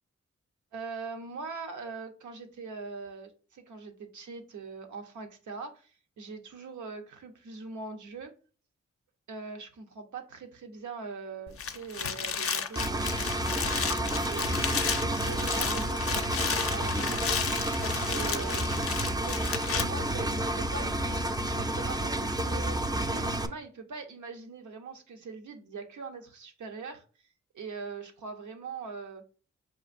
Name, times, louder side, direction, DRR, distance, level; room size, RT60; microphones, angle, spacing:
voice 1, 0.7-8.3 9.3-14.5 14.8-18.7 19.2-19.4 19.7-27.0 27.5-29.2, right 4 dB, 80° right, 0.7 m, -42 dB
sound 1, 11.5-19.8, left 7 dB, 50° left, 0.5 m, -33 dB
Engine, 12.8-23.5, right 1 dB, 15° right, 0.4 m, -30 dB
6.3 x 2.5 x 2.5 m
cardioid pair, 60°, 29 cm